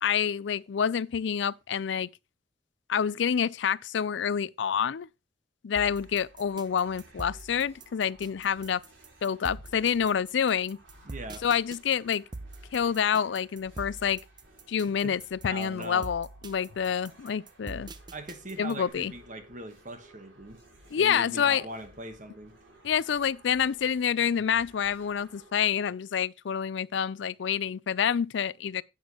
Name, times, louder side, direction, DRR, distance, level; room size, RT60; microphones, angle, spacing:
voice 1, 0.0-2.1 2.9-5.1 5.6-8.8 9.2-10.8 11.4-12.2 12.7-14.2 14.7-17.9 18.6-19.1 20.9-21.6 22.8-28.8, left 7 dB, 70° left, 0.4 m, -27 dB
sound 1, 5.8-18.9, right 2 dB, 25° right, 0.7 m, -44 dB
sound 2, 5.8-25.5, right 1 dB, 75° right, 4.2 m, -57 dB
voice 2, 11.0-11.4 15.0-15.2 15.5-16.1 18.1-20.6 20.9-22.6, right 1 dB, 40° right, 1.3 m, -41 dB
10.5 x 8.4 x 3.0 m
head